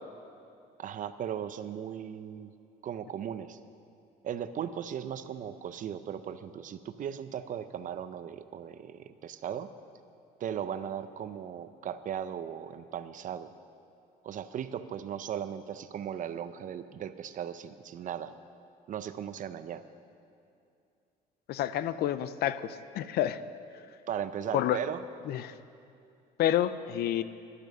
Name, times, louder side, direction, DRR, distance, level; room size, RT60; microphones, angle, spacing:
voice 1, 0.8-2.5 2.8-3.6 4.2-9.7 10.4-13.5 14.2-18.3 18.9-19.8 24.1-25.0, right 9 dB, 50° right, 12 dB, 0.6 m, -37 dB
voice 2, 21.5-23.4 24.5-24.8 25.3-25.5 26.4-27.2, left 11 dB, 70° left, 14 dB, 0.5 m, -29 dB
12.0 x 11.5 x 6.6 m, 2.5 s
cardioid pair, 110°, 17 cm